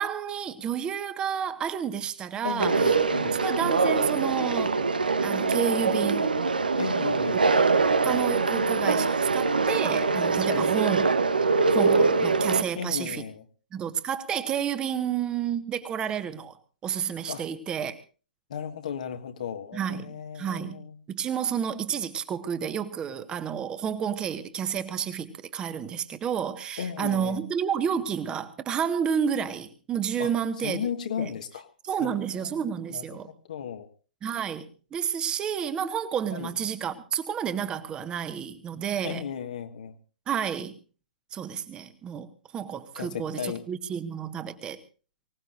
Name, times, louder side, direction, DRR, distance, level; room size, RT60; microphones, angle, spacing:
voice 1, 0.0-3.0 3.3-4.8 5.2-6.3 8.0-11.1 11.7-13.2 13.7-16.5 16.8-18.0 19.7-20.8 21.1-30.8 31.2-31.3 31.9-33.3 34.2-39.2 40.3-40.8 41.3-44.8, right 8 dB, 15° right, 11 dB, 1.5 m, -30 dB
voice 2, 2.4-3.4 6.8-7.5 10.5-10.7 12.8-13.4 17.3-17.4 18.5-21.0 26.8-27.5 30.2-30.3 30.6-31.7 32.0-33.2 33.5-33.9 36.3-36.5 39.0-40.0 42.9-43.6, left 8 dB, 55° left, 7 dB, 1.7 m, -35 dB
Conversation, 2.6-12.6, right 4 dB, 70° right, 1.3 m, -23 dB
24.5 x 18.0 x 2.6 m, 0.36 s
figure-of-eight pair, 115°, 5 cm